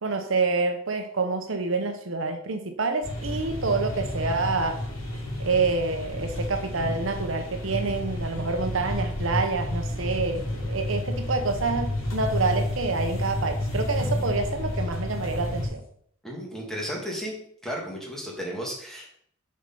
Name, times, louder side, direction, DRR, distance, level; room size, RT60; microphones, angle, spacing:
voice 1, 0.0-4.8 5.4-15.8, right 3 dB, 70° right, 6 dB, 0.8 m, -27 dB
sound 1, 3.0-15.7, left 1 dB, 90° left, 2.3 m, -31 dB
sound 2, 7.9-15.9, equal, 55° left, 2.0 m, -46 dB
voice 2, 16.2-17.4 17.6-19.1, equal, ahead, -2 dB, 1.9 m, -34 dB
6.5 x 4.4 x 5.3 m, 0.64 s
head